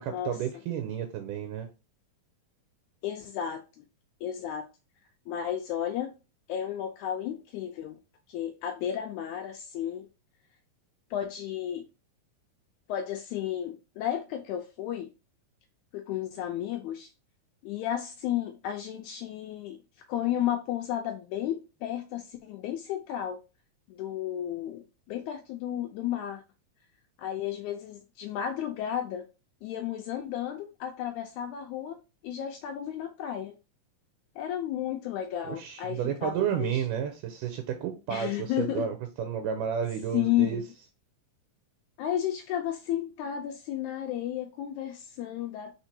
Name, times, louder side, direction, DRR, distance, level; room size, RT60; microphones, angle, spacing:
voice 1, 0.0-1.7 35.5-40.6, right 8 dB, 80° right, 2.1 m, -31 dB
voice 2, 3.0-3.6 4.2-4.7 5.3-6.1 6.5-8.0 8.3-10.1 11.1-11.9 12.9-15.1 15.9-17.1 17.6-19.8 20.1-23.4 23.9-26.4 27.2-29.3 29.6-32.0 32.2-33.6 34.4-36.8 38.1-38.9 40.1-40.6 42.0-45.7, left 11 dB, 85° left, 1.7 m, -33 dB
4.4 x 4.4 x 2.7 m
omnidirectional pair, 3.9 m